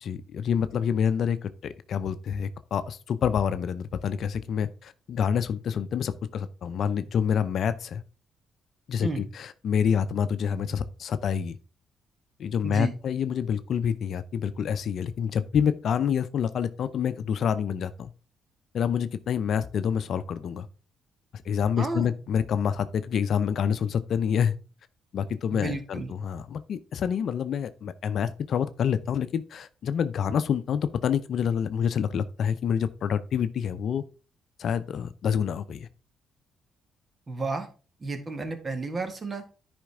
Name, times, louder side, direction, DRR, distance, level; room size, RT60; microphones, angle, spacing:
voice 1, 0.0-8.0 8.9-11.6 12.4-18.1 18.7-20.7 21.5-24.6 25.1-34.0 34.6-35.9, left 7 dB, 65° left, 0.6 m, -27 dB
voice 2, 12.6-12.9 21.8-22.1 25.5-26.1 37.3-37.7 38.0-39.4, right 3 dB, 35° right, 1.8 m, -32 dB
10.0 x 5.2 x 3.6 m
supercardioid pair, 60°, 0 cm